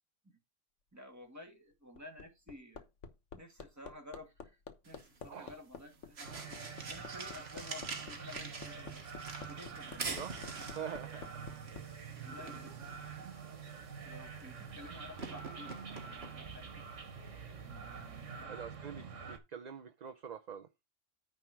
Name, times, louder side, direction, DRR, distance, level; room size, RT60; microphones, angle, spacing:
voice 1, 0.9-2.8 3.3-4.6 4.8-6.4 6.8-9.0 9.4-10.5 11.2-11.3 12.1-12.8 13.2-13.3 14.0-16.8 17.6-18.6 19.0-19.3, left 1 dB, 15° right, 2.1 m, -53 dB
Hammer, 1.7-11.8 13.2-13.3, left 6 dB, 75° left, 1.4 m, -49 dB
sound 1, 4.8-18.4, right 4 dB, 60° right, 1.6 m, -47 dB
sound 2, 6.2-19.4, right 6 dB, 85° right, 1.6 m, -47 dB
voice 2, 10.8-11.3 18.5-20.7, right 7 dB, 40° right, 0.7 m, -45 dB
9.5 x 3.4 x 6.0 m
omnidirectional pair, 1.2 m